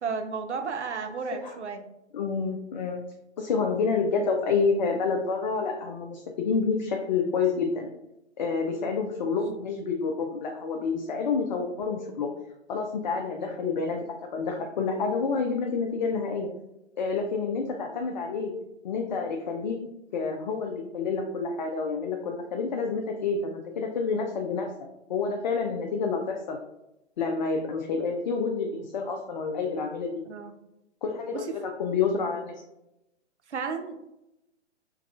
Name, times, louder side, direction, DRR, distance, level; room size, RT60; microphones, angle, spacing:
voice 1, 0.0-1.9 8.8-8.9 30.3-30.5 31.3-31.5 33.5-34.0, right 5 dB, 80° right, 7 dB, 0.6 m, -33 dB
voice 2, 2.1-3.0 3.4-7.9 8.4-12.3 12.7-14.1 14.3-16.5 17.0-18.5 18.8-19.8 20.1-24.7 25.1-26.6 27.2-30.2 31.0-32.6, left 5 dB, 45° left, 2 dB, 0.4 m, -28 dB
4.6 x 3.0 x 2.3 m, 0.89 s
figure-of-eight pair, 120°, 34 cm